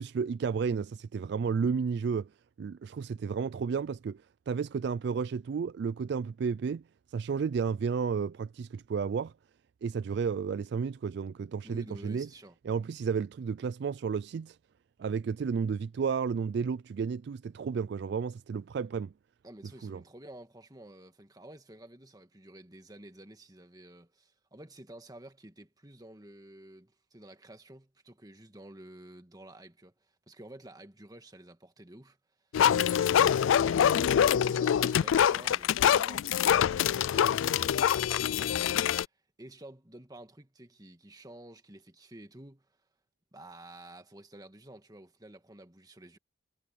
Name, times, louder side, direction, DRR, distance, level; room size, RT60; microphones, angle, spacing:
voice 1, 0.0-2.3 2.6-6.8 7.1-9.3 9.8-12.3 12.7-14.6 15.0-19.1 19.8-20.0, right 6 dB, 55° right, 0.3 m, -32 dB
voice 2, 11.6-12.6 19.4-42.8 43.3-46.2, right 1 dB, 20° right, 1.7 m, -51 dB
sound 1, 32.5-39.0, left 9 dB, 80° left, 0.3 m, -25 dB
head